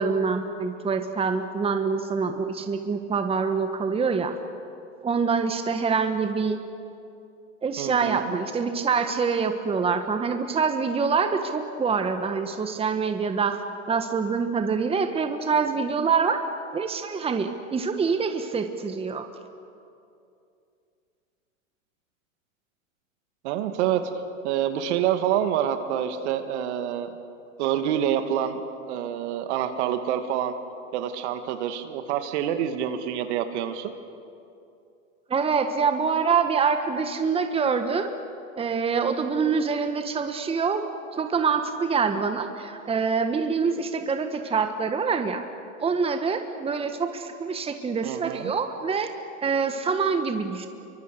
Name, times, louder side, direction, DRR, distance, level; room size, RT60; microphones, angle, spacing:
voice 1, 0.0-4.3 5.0-6.6 7.6-16.4 16.7-19.3 35.3-38.1 38.5-40.8 41.1-45.4 45.8-49.1 49.4-50.7, right 5 dB, 15° right, 7 dB, 1.5 m, -25 dB
voice 2, 7.8-8.4 23.4-24.1 24.4-27.1 27.6-28.6 28.9-30.5 30.9-33.9 48.0-48.5, right 10 dB, 60° right, 8 dB, 2.2 m, -27 dB
27.0 x 24.0 x 6.9 m, 2.6 s
hypercardioid pair, 115°, 39 cm